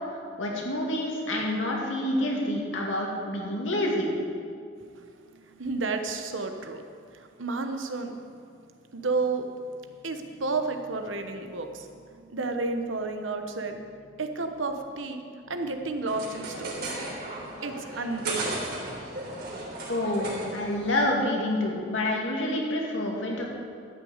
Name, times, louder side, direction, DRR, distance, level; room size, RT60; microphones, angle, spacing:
voice 1, 0.4-4.1 19.9-23.5, left 1 dB, 85° left, -1 dB, 2.4 m, -28 dB
voice 2, 4.9-6.8 7.1-8.2 8.9-9.5 10.0-18.9 19.3-19.4, right 3 dB, 85° right, 6 dB, 1.1 m, -32 dB
sound 1, 16.1-21.1, right 2 dB, 55° right, 3.4 m, -35 dB
12.5 x 6.3 x 8.1 m, 2.3 s
head